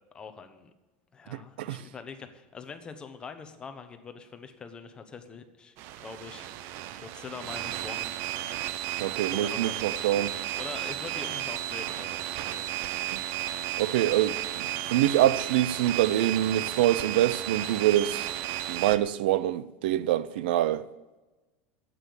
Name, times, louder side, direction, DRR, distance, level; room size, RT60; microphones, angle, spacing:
voice 1, 0.1-0.7 1.1-8.2 9.3-12.3 12.5-12.7, left 5 dB, 15° left, 1.0 m, -44 dB
voice 2, 1.3-1.8 9.0-10.3 13.1-13.2 13.8-14.4 14.9-18.3 18.7-20.8, right 13 dB, 90° right, 0.5 m, -25 dB
sound 1, 5.8-19.0, right 13 dB, 50° right, 0.6 m, -33 dB
9.8 x 8.6 x 7.1 m
supercardioid pair, 160°, 5 cm